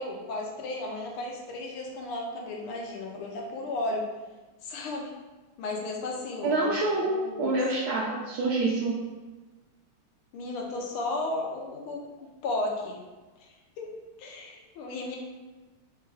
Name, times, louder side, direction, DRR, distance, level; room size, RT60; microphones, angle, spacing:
voice 1, 0.0-4.0 4.6-5.1 5.6-7.6 10.3-13.0 13.4-13.5 13.8-13.9 14.2-15.2, left 2 dB, 90° left, 0 dB, 1.6 m, -34 dB
voice 2, 6.4-8.9, right 2 dB, 70° right, -5 dB, 0.9 m, -27 dB
4.1 x 2.3 x 4.5 m, 1.2 s
omnidirectional pair, 2.3 m